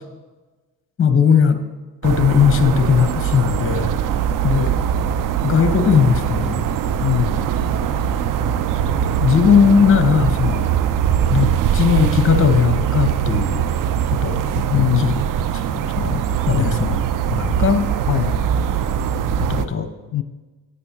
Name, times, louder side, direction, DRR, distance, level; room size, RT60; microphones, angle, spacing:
voice 1, 1.0-1.6 2.0-3.9 4.4-4.8 5.4-6.7 9.2-10.8 11.3-13.6 14.1-15.1 15.7-16.2 16.5-17.0 17.3-17.9 19.4-19.9, left 7 dB, 25° left, 9 dB, 1.1 m, -18 dB
sound 1, 2.0-19.7, right 9 dB, 45° right, 0.6 m, -21 dB
voice 2, 7.0-7.5 14.7-15.1 16.5-16.8 18.1-18.5 20.1-20.2, left 13 dB, 45° left, 13 dB, 0.9 m, -21 dB
16.5 x 8.4 x 2.9 m, 1.2 s
hypercardioid pair, 50°, 48 cm